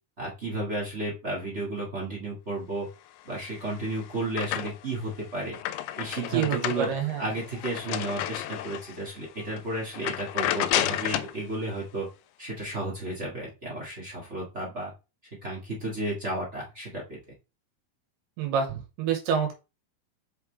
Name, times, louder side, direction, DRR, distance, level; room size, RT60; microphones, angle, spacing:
voice 1, 0.2-2.9 3.2-5.6 6.0-12.1 12.4-14.9 15.4-17.2, right 2 dB, 30° right, -4 dB, 1.3 m, -33 dB
sound 1, 3.4-5.0 5.4-9.0 9.4-9.6 9.9-11.4, left 13 dB, 85° left, 2.5 m, -31 dB
voice 2, 6.3-7.3 18.4-19.6, right 7 dB, 90° right, 3 dB, 3.3 m, -27 dB
5.8 x 5.5 x 3.3 m, 0.29 s
omnidirectional pair, 4.5 m